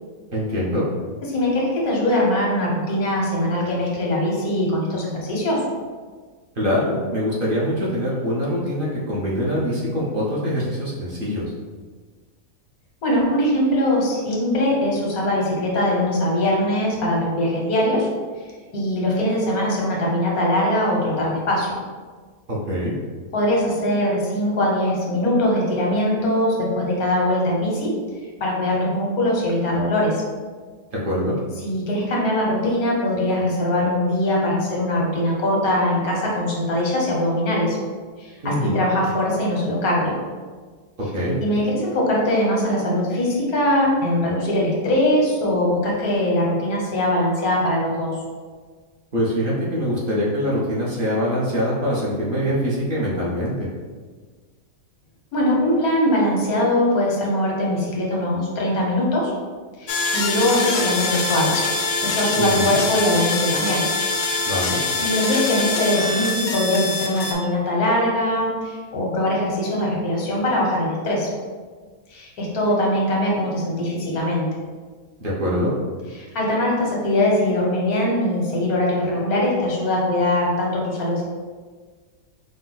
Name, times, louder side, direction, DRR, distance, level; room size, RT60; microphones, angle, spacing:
voice 1, 0.3-0.9 6.5-11.5 22.5-23.0 30.9-31.4 38.4-38.8 41.0-41.4 49.1-53.5 62.4-62.8 64.5-64.8 75.2-75.7, equal, 45° right, -6 dB, 0.9 m, -24 dB
voice 2, 1.3-5.7 13.0-18.1 18.4-21.8 23.3-27.9 28.4-30.2 31.6-37.8 38.2-40.1 41.4-48.2 55.3-59.3 59.8-61.6 62.0-63.8 65.0-71.3 72.1-74.5 76.1-81.2, left 1 dB, 90° left, -3 dB, 1.6 m, -21 dB
sound 1, 59.9-67.3, left 3 dB, 65° left, 0.8 m, -24 dB
5.1 x 2.2 x 3.8 m, 1.5 s
omnidirectional pair, 1.5 m